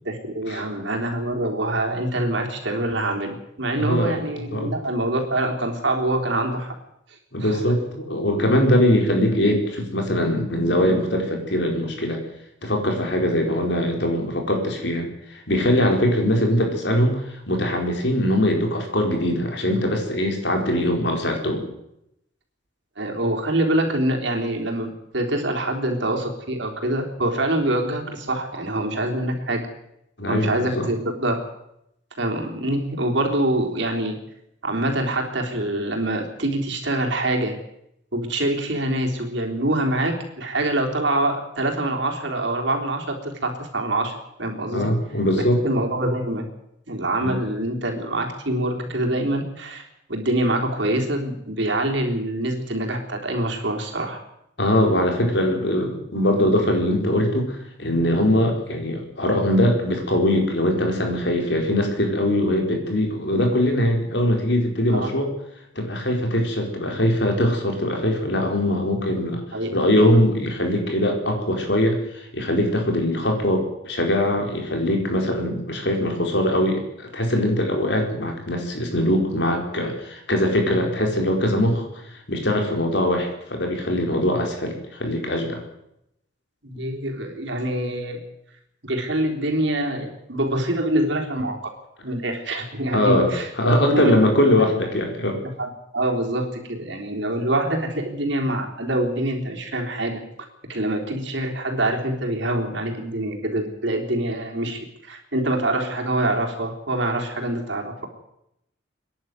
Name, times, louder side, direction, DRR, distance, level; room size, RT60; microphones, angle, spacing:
voice 1, 0.0-6.7 7.4-7.6 23.0-29.7 30.3-31.4 32.2-34.2 34.6-37.6 38.1-44.9 45.6-46.5 46.9-54.2 64.9-65.1 69.5-69.7 86.6-88.2 88.8-91.6 92.0-94.2 94.5-94.7 95.6-100.2 100.7-108.1, right 1 dB, 65° right, 2 dB, 3.8 m, -25 dB
voice 2, 3.7-4.2 4.5-4.7 7.3-12.2 12.6-21.6 30.2-30.9 44.7-45.6 47.2-47.4 54.6-65.3 65.7-69.4 69.7-81.9 82.3-85.6 92.9-93.3 93.6-95.4, left 1 dB, 60° left, 3 dB, 4.5 m, -22 dB
25.5 x 11.0 x 9.5 m, 0.80 s
head